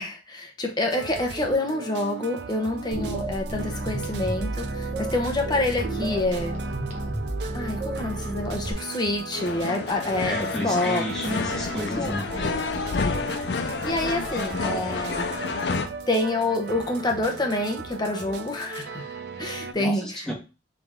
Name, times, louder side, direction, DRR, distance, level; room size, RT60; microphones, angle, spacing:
voice 1, 0.0-6.6 7.5-11.0 12.0-12.5 12.9-13.2 13.6-15.3 16.1-20.0, left 2 dB, 25° left, 2 dB, 0.9 m, -27 dB
sound 1, 0.9-19.7, right 5 dB, 65° right, 0.4 m, -37 dB
sound 2, 2.9-8.7, right 1 dB, 40° right, 1.0 m, -31 dB
sound 3, 9.4-15.9, left 4 dB, 65° left, 0.4 m, -29 dB
voice 2, 10.0-12.2 19.7-20.3, equal, 5° left, -4 dB, 1.6 m, -32 dB
3.8 x 3.5 x 3.6 m, 0.30 s
head